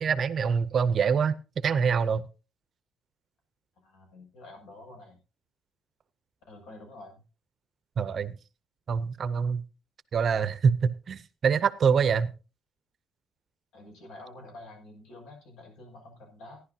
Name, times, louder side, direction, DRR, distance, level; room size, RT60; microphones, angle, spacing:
voice 1, 0.0-2.2 8.0-8.3 8.9-9.6 10.1-12.3, right 6 dB, 35° right, 14 dB, 0.6 m, -25 dB
voice 2, 3.8-5.2 6.5-7.2 13.7-16.6, left 2 dB, 85° left, 3 dB, 6.8 m, -48 dB
17.0 x 11.0 x 2.8 m, 0.31 s
cardioid pair, 175°, 0 cm